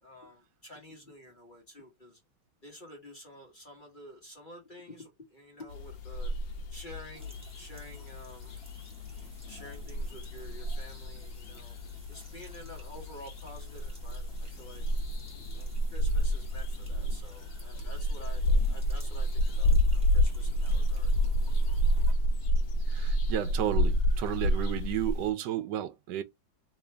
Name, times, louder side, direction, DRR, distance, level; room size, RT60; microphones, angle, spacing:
voice 1, 0.0-2.2 2.6-6.3 6.7-8.6 9.5-11.7 12.1-14.9 15.5-21.1, left 1 dB, 30° left, 1.1 m, -50 dB
sound 1, 5.7-25.3, equal, 80° left, 1.5 m, -29 dB
sound 2, 7.1-22.1, right 1 dB, 5° right, 1.6 m, -56 dB
voice 2, 22.9-26.2, right 12 dB, 70° right, 1.2 m, -32 dB
3.3 x 2.9 x 3.3 m
omnidirectional pair, 2.1 m